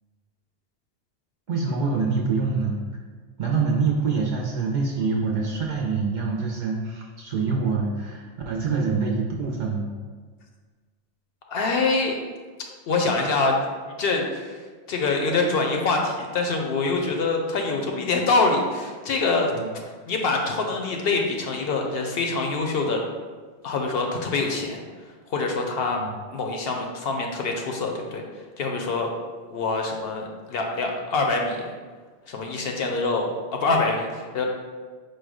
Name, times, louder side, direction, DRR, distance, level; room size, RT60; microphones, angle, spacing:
voice 1, 1.5-2.8 3.4-9.9 17.0-17.1 19.5-19.7 25.9-26.1, right 4 dB, 55° right, -1 dB, 0.6 m, -25 dB
voice 2, 11.5-12.2 12.9-14.6 14.9-19.5 20.1-23.0 23.6-24.8 25.3-26.0 26.3-28.2 28.6-29.1 29.5-31.7 32.3-33.3 33.6-34.5, left 3 dB, 65° left, 2 dB, 0.7 m, -25 dB
4.7 x 2.2 x 4.7 m, 1.5 s
omnidirectional pair, 1.1 m